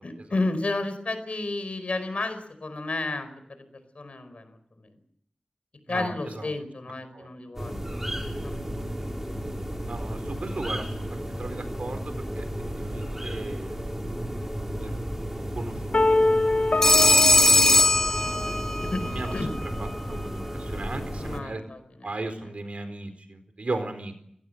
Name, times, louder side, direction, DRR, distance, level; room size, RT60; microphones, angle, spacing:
voice 1, 0.0-3.6 3.9-4.9 5.9-7.8 8.4-8.6 12.7-12.8 18.1-18.3 18.9-19.0 19.3-19.5 21.2-22.1, left 2 dB, 75° left, 10 dB, 4.8 m, -32 dB
voice 2, 5.9-6.5 7.1-7.3 9.9-12.5 12.8-14.2 14.8-15.0 15.4-16.0 16.5-18.6 19.0-19.3 19.6-21.6 22.0-24.1, right 2 dB, 75° right, 8 dB, 4.3 m, -37 dB
sound 1, 7.6-21.4, equal, 15° right, 4.5 m, -33 dB
sound 2, 15.9-18.9, left 2 dB, 60° left, 1.5 m, -25 dB
Telephone, 16.8-18.9, left 2 dB, 20° left, 2.5 m, -19 dB
29.5 x 17.5 x 7.9 m, 0.71 s
wide cardioid pair, 65°, 2 cm